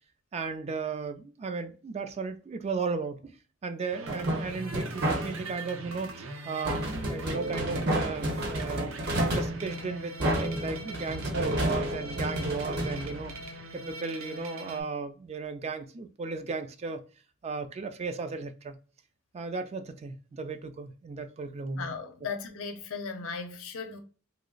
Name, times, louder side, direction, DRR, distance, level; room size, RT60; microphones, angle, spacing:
voice 1, 0.3-3.4 3.6-8.9 9.3-17.0 17.4-18.8 19.3-21.9, right 4 dB, 30° right, 0.3 m, -35 dB
sound 1, 3.9-14.8, right 2 dB, 90° right, 0.6 m, -40 dB
sound 2, 4.1-5.6 6.7-13.8, right 1 dB, 55° right, 0.9 m, -31 dB
voice 2, 21.7-24.0, left 5 dB, 85° left, 0.6 m, -37 dB
3.1 x 2.0 x 3.7 m
head